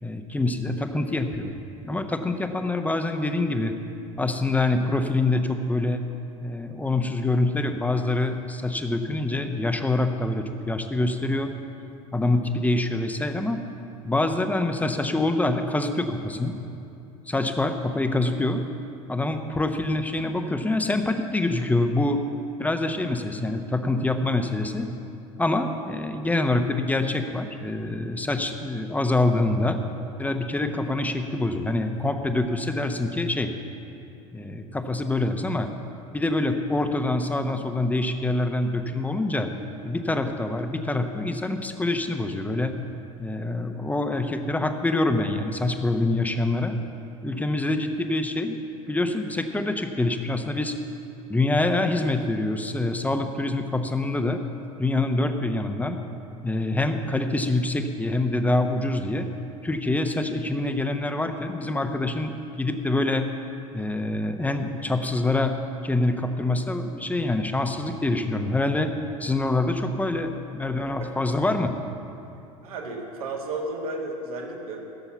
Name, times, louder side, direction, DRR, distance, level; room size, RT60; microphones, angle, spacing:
voice 1, 0.0-1.5 1.8-3.7 4.2-6.0 6.4-11.5 12.1-13.6 14.0-16.5 17.3-18.6 19.1-22.2 22.6-24.9 25.4-29.8 30.2-33.5 34.3-35.7 36.1-39.5 39.8-42.7 43.2-46.7 47.2-48.6 48.9-50.7 51.3-54.4 54.8-56.0 56.4-59.3 59.6-63.3 63.7-65.5 65.8-68.9 69.2-71.7, left 2 dB, 10° left, 7 dB, 0.9 m, -25 dB
voice 2, 70.8-71.1 72.6-74.8, right 2 dB, 75° right, 0 dB, 2.0 m, -33 dB
16.0 x 6.9 x 7.0 m, 2.7 s
figure-of-eight pair, 75°, 19 cm